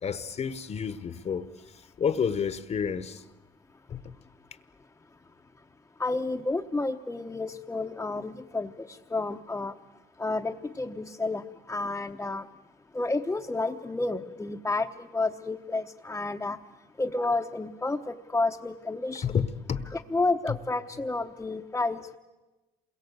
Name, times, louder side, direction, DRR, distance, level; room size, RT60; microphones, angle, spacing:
voice 1, 0.0-3.2 3.9-4.1 19.2-19.9 20.5-20.6, left 7 dB, 40° left, 1.2 m, -30 dB
voice 2, 6.0-9.7 10.2-12.5 12.9-16.6 17.0-19.3 19.9-22.2, left 3 dB, 15° left, 1.0 m, -30 dB
28.0 x 22.0 x 8.2 m
cardioid pair, 110°, 17 cm